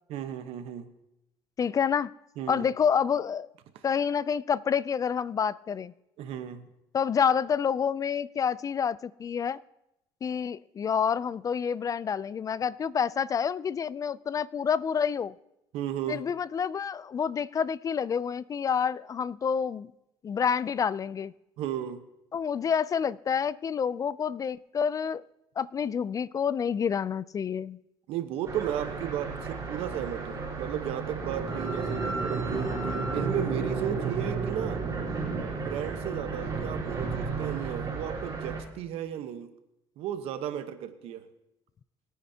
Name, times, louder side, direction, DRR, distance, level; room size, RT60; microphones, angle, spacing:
voice 1, 0.1-0.9 2.4-2.7 6.2-6.7 15.7-16.2 21.6-22.0 28.1-34.8 35.6-39.5 40.0-41.3, right 10 dB, 80° right, 9 dB, 1.1 m, -34 dB
voice 2, 1.6-2.1 2.5-3.5 3.8-5.9 6.9-9.6 10.2-15.3 16.1-19.9 20.2-21.3 22.3-25.2 25.6-27.8, left 7 dB, 35° left, 20 dB, 0.4 m, -28 dB
sound 1, 28.4-38.6, right 4 dB, 35° right, 3.8 m, -32 dB
21.5 x 9.4 x 2.8 m, 0.86 s
cardioid pair, 95°, 10 cm